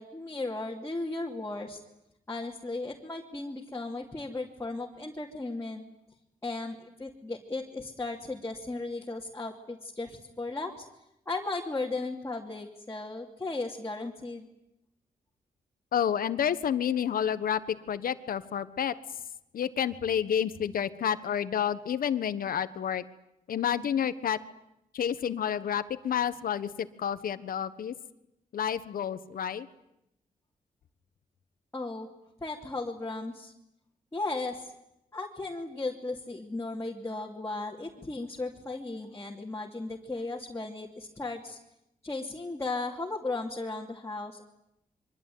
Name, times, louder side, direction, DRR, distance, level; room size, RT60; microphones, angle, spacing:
voice 1, 0.0-1.8 2.3-5.8 6.4-10.9 11.3-14.5 31.7-32.1 32.4-33.5 34.1-34.7 35.1-41.6 42.0-44.4, left 2 dB, 20° left, -2 dB, 2.8 m, -36 dB
voice 2, 15.9-18.9 19.5-23.0 23.5-24.4 24.9-27.9 28.5-29.7, left 9 dB, 80° left, 13 dB, 1.4 m, -29 dB
26.5 x 24.0 x 9.4 m, 0.83 s
cardioid pair, 100°, 15 cm